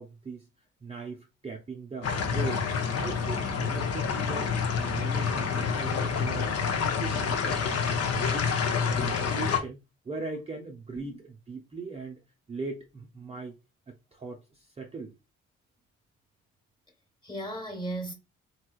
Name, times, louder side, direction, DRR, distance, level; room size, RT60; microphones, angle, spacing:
voice 1, 0.0-6.5 6.8-8.6 8.8-9.8 10.0-12.2 12.5-13.6 13.9-15.1, right 4 dB, 20° right, 0.6 m, -40 dB
sound 1, 2.0-9.6, left 6 dB, 55° left, 0.7 m, -28 dB
voice 2, 8.9-9.2 10.9-11.2 17.2-18.1, right 1 dB, 15° left, 1.3 m, -36 dB
3.1 x 2.9 x 2.3 m
cardioid pair, 90°, 30 cm